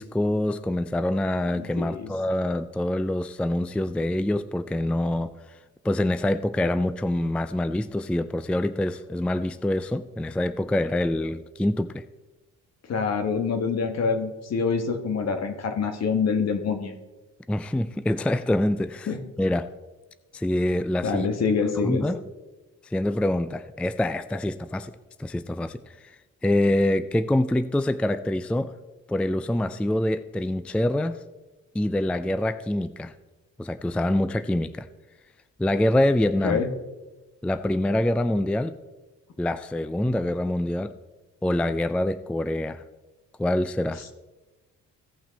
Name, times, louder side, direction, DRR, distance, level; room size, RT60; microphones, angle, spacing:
voice 1, 0.0-5.6 5.8-12.0 17.5-19.1 19.4-19.7 20.3-21.3 21.8-22.2 22.8-24.9 25.2-26.2 26.4-28.7 29.1-31.2 31.7-33.1 33.6-34.9 35.6-36.6 37.4-38.8 39.4-40.9 41.4-42.8 43.4-44.0, left 1 dB, 5° left, 13 dB, 0.3 m, -25 dB
voice 2, 1.5-2.1 12.9-16.9 19.1-19.2 21.0-22.0 36.4-36.7, left 5 dB, 60° left, 7 dB, 1.5 m, -26 dB
16.5 x 5.9 x 4.1 m, 1.1 s
cardioid pair, 90°, 30 cm